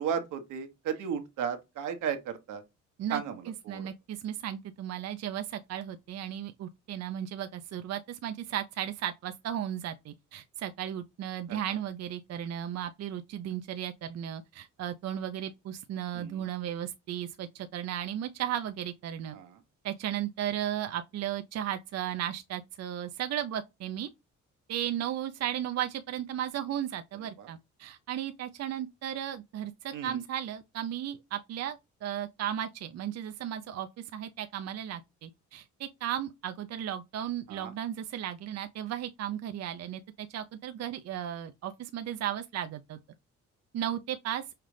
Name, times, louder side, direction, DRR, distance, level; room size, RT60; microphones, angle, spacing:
voice 1, 0.0-2.6 3.1-3.9 11.5-11.6 16.1-16.4 19.3-19.6 27.2-27.5 29.9-30.2 37.5-37.7, right 8 dB, 85° right, 1.2 m, -35 dB
voice 2, 3.0-19.4 19.8-24.1 24.7-43.0 43.7-44.4, right 10 dB, 55° right, 0.6 m, -35 dB
5.7 x 2.4 x 3.2 m
cardioid pair, 90°, 30 cm